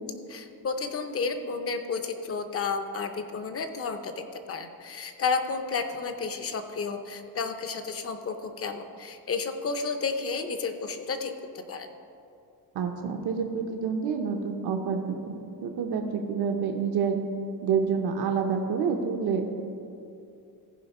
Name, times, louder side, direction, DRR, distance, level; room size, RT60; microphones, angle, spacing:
voice 1, 0.3-11.3 11.7-11.9, left 4 dB, 35° left, 8 dB, 0.6 m, -32 dB
voice 2, 12.7-15.2 15.6-17.2 17.6-19.6, right 6 dB, 75° right, 4 dB, 0.9 m, -28 dB
15.0 x 5.0 x 5.4 m, 2.6 s
cardioid pair, 170°, 39 cm